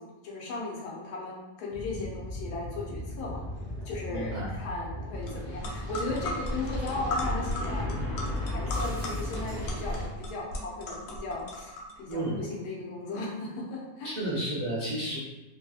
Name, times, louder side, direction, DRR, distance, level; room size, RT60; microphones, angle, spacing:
voice 1, 0.0-3.4 3.8-8.0 8.4-14.2, left 2 dB, 85° left, -3 dB, 1.3 m, -37 dB
sound 1, 1.7-10.1, left 1 dB, 25° right, 0.4 m, -35 dB
voice 2, 4.1-4.6 12.1-12.4 14.0-15.2, right 1 dB, 90° right, -8 dB, 0.4 m, -32 dB
sound 2, 5.3-5.4 5.6-12.2, left 2 dB, 70° left, 0.9 m, -37 dB
3.1 x 2.8 x 2.3 m, 1.0 s
omnidirectional pair, 1.7 m